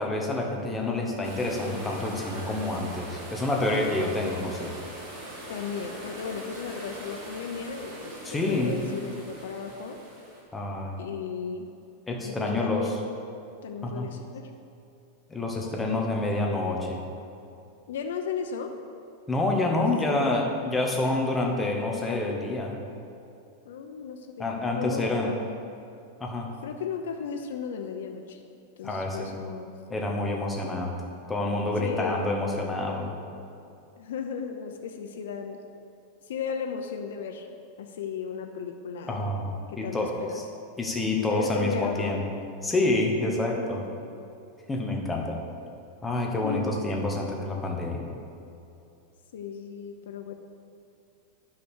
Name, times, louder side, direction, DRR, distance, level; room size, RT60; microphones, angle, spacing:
voice 1, 0.0-4.7 8.2-8.7 10.5-11.0 12.1-12.9 13.8-14.1 15.3-17.0 19.3-22.8 24.4-25.4 26.2-26.5 28.8-29.3 29.9-31.0 31.3-33.1 39.1-40.2 40.8-42.2 42.6-43.8 44.7-45.4 46.0-48.1, left 2 dB, 10° left, 0 dB, 1.1 m, -28 dB
sound 1, 1.2-10.4, right 1 dB, 35° right, 2.7 m, -41 dB
voice 2, 5.5-10.0 11.0-11.7 12.2-13.2 13.6-14.5 17.9-18.8 19.8-20.3 23.6-25.4 26.6-28.4 28.8-29.8 31.8-32.3 34.0-35.6 36.3-37.5 37.8-39.2 39.7-40.4 41.3-42.2 43.3-43.9 46.4-46.8 49.3-50.3, left 6 dB, 85° left, 4 dB, 0.8 m, -35 dB
10.5 x 6.0 x 6.4 m, 2.7 s
supercardioid pair, 165°, 0 cm